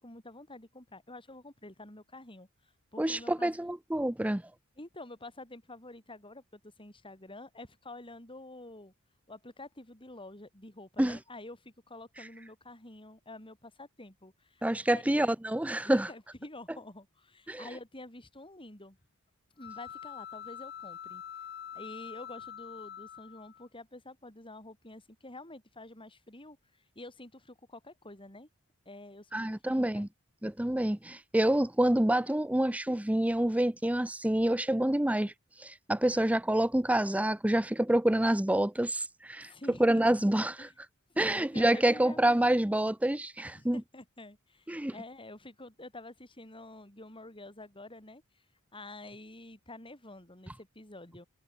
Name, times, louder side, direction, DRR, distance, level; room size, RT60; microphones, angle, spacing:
voice 1, 0.0-3.5 4.8-8.9 9.3-15.0 15.8-19.0 19.6-21.2 21.7-28.5 28.9-30.1 39.4-40.0 40.6-40.7 41.1-42.5 43.4-48.4 48.7-51.3, left 2 dB, 25° left, 7.8 m, -48 dB
voice 2, 3.0-4.4 11.0-11.2 14.6-16.1 17.5-17.7 29.3-30.1 30.4-35.3 35.6-39.5 39.8-40.7 41.2-43.8 44.7-44.9, right 1 dB, 5° right, 0.6 m, -27 dB
sound 1, 19.6-23.7, left 9 dB, 50° left, 1.4 m, -45 dB
head